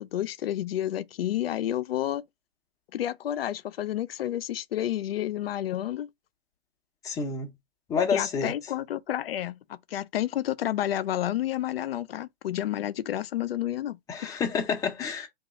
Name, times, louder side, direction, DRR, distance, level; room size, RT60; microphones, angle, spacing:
voice 1, 0.0-2.2 2.9-6.1 8.1-14.0 14.2-14.3, left 12 dB, 70° left, 0.4 m, -30 dB
voice 2, 7.0-7.5 7.9-8.5 14.1-15.3, left 6 dB, 10° left, 0.6 m, -28 dB
2.8 x 2.3 x 3.8 m
hypercardioid pair, 135°, 31 cm